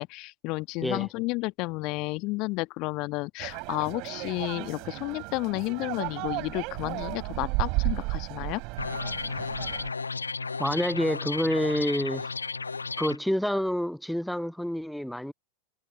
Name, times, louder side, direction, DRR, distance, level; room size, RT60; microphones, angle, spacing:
voice 1, 0.0-8.6, left 24 dB, 40° left, 1.5 m, -31 dB
sound 1, 3.4-9.9, right 29 dB, 45° right, 4.1 m, -33 dB
sound 2, 8.8-13.2, left 4 dB, 75° left, 0.7 m, -33 dB
voice 2, 10.6-12.3 13.0-15.3, equal, ahead, 0.6 m, -28 dB
figure-of-eight pair, 90°, 0 cm